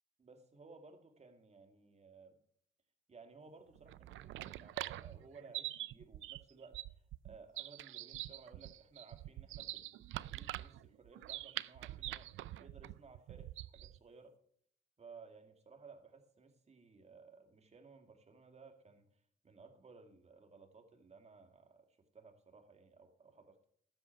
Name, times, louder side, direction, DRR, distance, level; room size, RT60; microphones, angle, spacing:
voice 1, 0.2-2.4 3.1-6.8 7.2-14.4 15.0-23.7, right 4 dB, 35° right, 6 dB, 2.2 m, -58 dB
sound 1, 3.8-14.0, right 15 dB, 80° right, 0.5 m, -45 dB
12.5 x 8.1 x 4.6 m, 0.64 s
cardioid pair, 90°, 20 cm